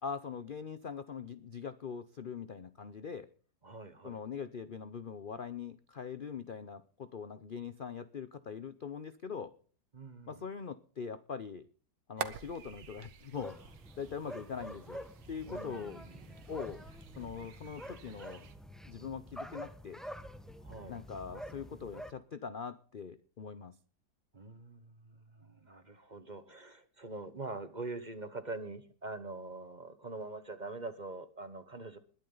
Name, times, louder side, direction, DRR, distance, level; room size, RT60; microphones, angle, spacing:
voice 1, 0.0-3.3 4.0-9.5 10.3-11.7 12.1-13.7 14.0-15.0 15.3-16.0 16.5-16.8 17.2-18.5 18.9-20.0 20.9-23.8, left 6 dB, 65° left, 13 dB, 0.5 m, -42 dB
voice 2, 3.6-4.2 9.9-10.4 15.5-16.4 17.2-17.3 20.6-21.0 24.3-32.0, right 3 dB, 30° right, 11 dB, 1.1 m, -44 dB
sound 1, 12.2-18.6, right 8 dB, 75° right, 1.8 m, -48 dB
sound 2, 13.3-22.1, equal, ahead, 0.8 m, -47 dB
21.0 x 11.0 x 4.0 m, 0.42 s
omnidirectional pair, 2.0 m